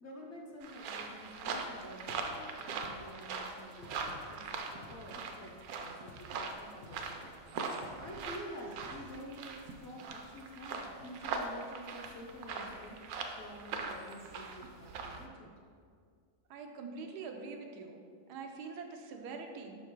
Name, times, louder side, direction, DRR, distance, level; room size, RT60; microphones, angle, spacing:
voice 1, 0.0-4.4 4.9-7.3 8.0-13.0 13.4-15.5, equal, 55° left, -1 dB, 0.9 m, -49 dB
sound 1, 0.6-15.3, right 4 dB, 70° right, 1.0 m, -41 dB
sound 2, 2.1-10.1, left 3 dB, 85° left, 1.2 m, -55 dB
voice 2, 16.5-18.0 18.3-19.8, right 4 dB, 90° right, 4 dB, 1.2 m, -44 dB
5.6 x 4.4 x 4.6 m, 2.1 s
omnidirectional pair, 1.7 m